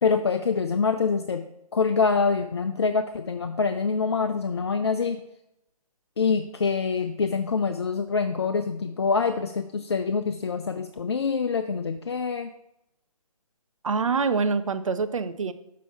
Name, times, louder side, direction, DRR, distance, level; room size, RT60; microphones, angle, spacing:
voice 1, 0.0-1.4 1.7-5.2 6.2-12.5, left 5 dB, 45° left, 8 dB, 0.4 m, -25 dB
voice 2, 13.8-15.5, right 4 dB, 60° right, 11 dB, 0.6 m, -25 dB
6.2 x 5.6 x 4.2 m, 0.85 s
figure-of-eight pair, 145°, 19 cm